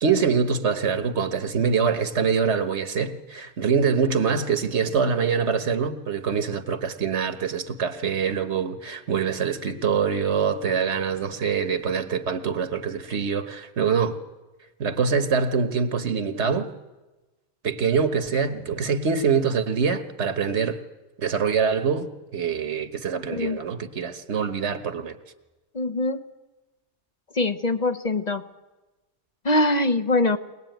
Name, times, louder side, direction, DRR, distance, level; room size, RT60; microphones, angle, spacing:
voice 1, 0.0-14.2 14.8-16.7 17.6-20.8 21.2-22.1 22.3-25.2, right 6 dB, 85° right, 1.5 m, -24 dB
voice 2, 23.3-23.6 25.7-26.2 27.3-28.4 29.4-30.4, left 2 dB, 40° left, 1.0 m, -23 dB
23.0 x 19.0 x 9.2 m
omnidirectional pair, 1.1 m